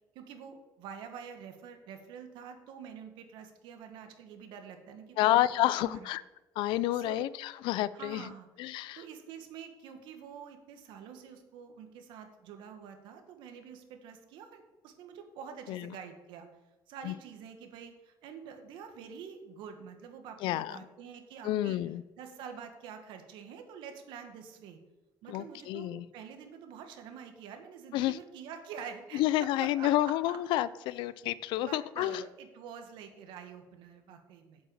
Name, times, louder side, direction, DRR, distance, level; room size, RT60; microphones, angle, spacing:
voice 1, 0.2-6.1 6.9-7.3 7.9-8.5 8.9-16.5 16.9-21.8 22.2-24.8 25.2-30.4 31.5-34.6, right 7 dB, 85° right, 6 dB, 1.8 m, -47 dB
voice 2, 5.2-6.2 6.6-8.3 8.6-9.0 15.7-15.9 17.0-17.1 20.4-20.8 21.4-22.0 25.3-26.1 27.9-28.2 29.1-32.2, left 14 dB, 85° left, 18 dB, 0.5 m, -29 dB
8.6 x 8.0 x 7.3 m, 1.1 s
cardioid pair, 140°, 8 cm